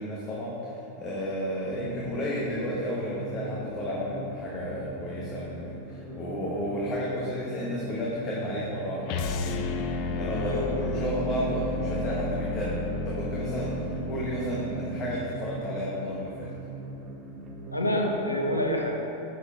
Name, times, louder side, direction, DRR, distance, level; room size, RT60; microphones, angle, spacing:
voice 1, 0.0-16.5, equal, 25° left, -5 dB, 1.0 m, -33 dB
sound 1, 1.7-18.4, right 3 dB, 30° right, 0.8 m, -40 dB
sound 2, 9.1-15.2, left 2 dB, 45° left, 0.4 m, -32 dB
voice 2, 10.4-10.8 17.7-19.0, left 1 dB, 85° left, 1 dB, 0.8 m, -28 dB
7.4 x 6.1 x 3.6 m, 2.9 s
figure-of-eight pair, 90°, 0 cm